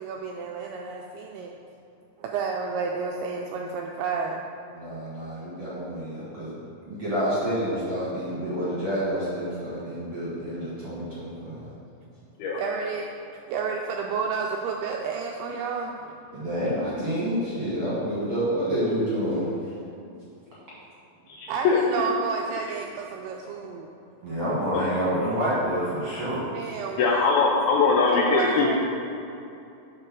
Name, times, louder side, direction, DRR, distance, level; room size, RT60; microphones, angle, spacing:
voice 1, 0.0-1.5 2.2-4.4 12.5-13.1 13.5-16.0 21.5-23.9 26.5-27.2 28.1-28.8, right 5 dB, 85° right, 1 dB, 2.3 m, -30 dB
voice 2, 4.7-6.5 6.8-11.7 16.3-19.5 24.2-26.5, equal, 55° right, -9 dB, 1.6 m, -28 dB
voice 3, 21.3-21.8 27.0-28.7, left 4 dB, 80° left, -1 dB, 2.2 m, -21 dB
9.8 x 3.8 x 6.1 m, 2.7 s
omnidirectional pair, 5.0 m